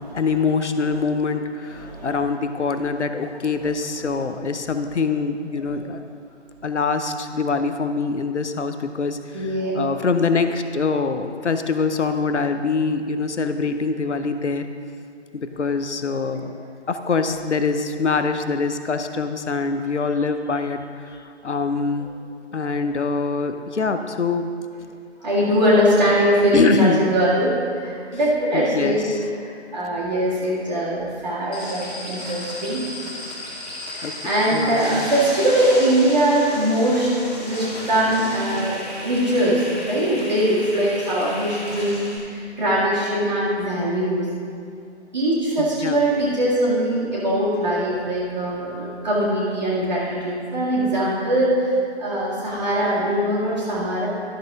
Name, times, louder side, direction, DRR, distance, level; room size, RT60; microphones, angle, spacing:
voice 1, 0.0-6.0 6.6-14.7 15.3-22.1 22.5-24.5 26.5-27.1 28.5-29.2 34.0-34.2 34.5-35.1 45.6-46.0, left 4 dB, 75° left, 8 dB, 0.8 m, -24 dB
voice 2, 1.8-2.2 9.3-9.7 25.2-27.5 27.8-29.1 29.4-32.9 33.9-37.1 37.4-44.3 45.1-54.1, right 1 dB, 35° right, -10 dB, 1.9 m, -21 dB
sound 1, 31.5-42.2, left 1 dB, 35° left, 2.0 m, -34 dB
12.0 x 6.6 x 3.6 m, 2.3 s
figure-of-eight pair, 160°, 35 cm